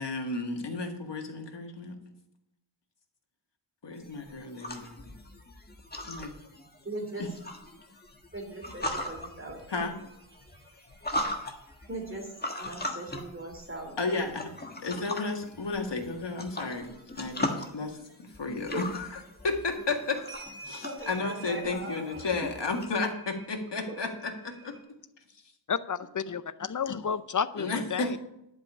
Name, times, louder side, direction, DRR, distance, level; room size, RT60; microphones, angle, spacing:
voice 1, 0.0-2.0 3.8-5.2 6.1-6.3 7.2-7.3 9.7-10.0 14.0-14.5 14.8-20.2 20.6-24.8 27.6-28.2, left 3 dB, 60° left, 1.9 m, -33 dB
sound 1, 3.9-22.9, left 1 dB, 20° left, 1.4 m, -39 dB
voice 2, 6.8-7.3 8.3-9.9 11.9-14.3 18.7-18.8 20.8-22.2 23.9-24.0, right 2 dB, 25° right, 2.9 m, -40 dB
sound 2, 8.3-14.9 15.3-16.9 17.3-18.6 19.3-19.4 19.8-24.8, right 3 dB, 45° right, 2.6 m, -52 dB
voice 3, 25.7-28.2, left 6 dB, 40° left, 0.6 m, -31 dB
11.0 x 5.2 x 8.5 m
wide cardioid pair, 110°, 47 cm